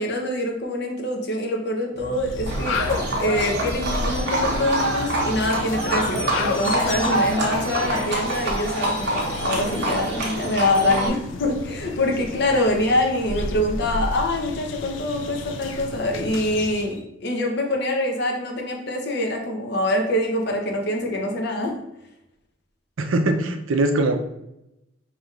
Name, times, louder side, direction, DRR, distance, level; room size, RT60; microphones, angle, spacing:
voice 1, 0.0-2.8 3.2-16.9 17.2-21.7, left 1 dB, 55° left, 1 dB, 0.7 m, -24 dB
sound 1, 1.9-8.0, left 1 dB, 35° right, 0.8 m, -37 dB
sound 2, 2.1-17.0, left 3 dB, 70° left, 0.4 m, -33 dB
Livestock farm animals working animals, 2.5-11.1, right 1 dB, 55° right, 1.0 m, -26 dB
voice 2, 23.0-24.2, right 2 dB, 85° right, 6 dB, 0.5 m, -21 dB
5.4 x 2.9 x 2.4 m, 0.85 s
head